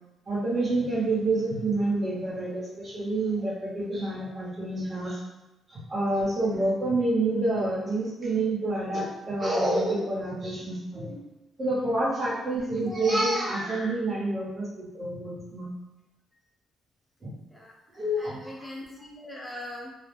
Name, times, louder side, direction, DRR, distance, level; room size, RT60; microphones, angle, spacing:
voice 1, 0.3-5.2 5.7-11.2 11.6-15.7 17.2-17.3 17.9-18.5, right 2 dB, 35° right, -6 dB, 1.0 m, -28 dB
voice 2, 18.2-19.9, left 1 dB, 10° left, -2 dB, 0.6 m, -41 dB
2.2 x 2.1 x 3.3 m, 0.98 s
cardioid pair, 90°, 0 cm